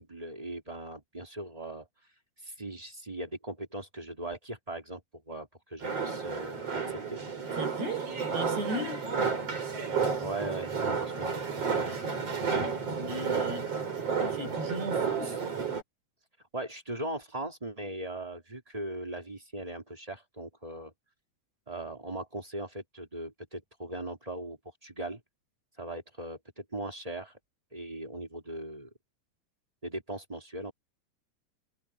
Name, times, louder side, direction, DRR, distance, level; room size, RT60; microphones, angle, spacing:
voice 1, 0.0-1.9 2.4-7.2 10.2-11.5 16.5-20.9 21.7-25.2 25.8-27.4 27.7-28.9 29.8-30.7, right 1 dB, 15° right, 1.6 m, -39 dB
sound 1, 5.8-15.8, right 5 dB, 35° right, 5.3 m, -32 dB
voice 2, 7.6-9.1 13.0-13.7 13.9-14.0 14.3-15.4, right 1 dB, 60° right, 8.2 m, -36 dB
omnidirectional pair, 5.4 m